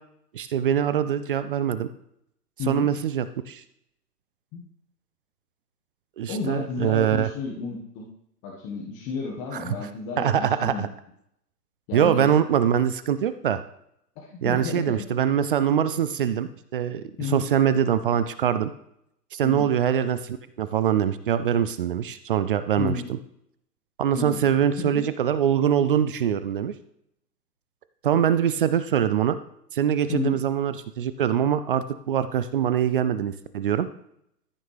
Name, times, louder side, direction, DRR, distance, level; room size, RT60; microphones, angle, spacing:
voice 1, 0.3-1.9 2.7-3.6 6.2-7.3 9.5-9.7 10.2-10.9 11.9-13.6 14.4-18.7 19.3-23.0 24.0-26.7 28.0-29.4 29.7-33.9, right 9 dB, 35° right, 12 dB, 0.4 m, -23 dB
voice 2, 2.6-2.9 4.5-4.6 6.3-8.0 8.4-10.8 11.9-12.3 14.2-14.9 17.2-17.4 19.4-19.7 22.8-23.1 24.1-24.4 24.8-25.0 30.1-30.4, left 5 dB, 30° left, -2 dB, 1.7 m, -32 dB
14.0 x 6.3 x 3.5 m, 0.73 s
hypercardioid pair, 130°, 49 cm